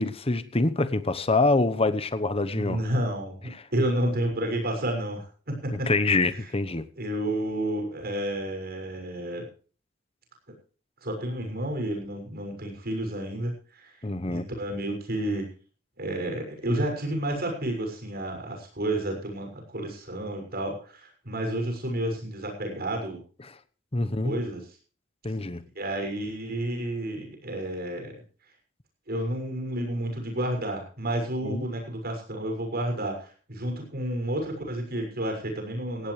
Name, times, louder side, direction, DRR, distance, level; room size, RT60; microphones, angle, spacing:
voice 1, 0.0-2.8 5.7-6.8 14.0-14.4 23.9-24.4 25.2-25.6 31.4-31.6, left 2 dB, 30° left, 1.0 m, -25 dB
voice 2, 2.5-5.9 6.3-6.5 7.0-9.5 11.0-14.0 14.3-15.5 16.0-23.2 24.0-24.6 25.7-28.1 29.1-36.1, right 1 dB, 50° right, 6.5 m, -31 dB
18.0 x 16.0 x 3.3 m
head